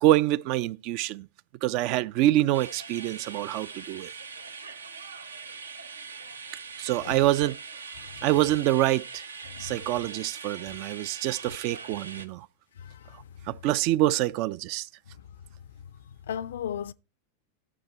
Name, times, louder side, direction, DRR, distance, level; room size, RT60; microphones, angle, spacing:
voice 1, 0.0-1.3 1.6-4.1 6.8-7.6 8.2-9.0 9.6-12.5 13.5-14.9, right 15 dB, 45° right, 0.5 m, -25 dB
sound 1, 2.5-12.3, right 5 dB, 75° right, 1.0 m, -42 dB
voice 2, 16.3-16.9, left 9 dB, 60° left, 0.5 m, -34 dB
12.5 x 7.2 x 4.4 m
figure-of-eight pair, 90°, 0 cm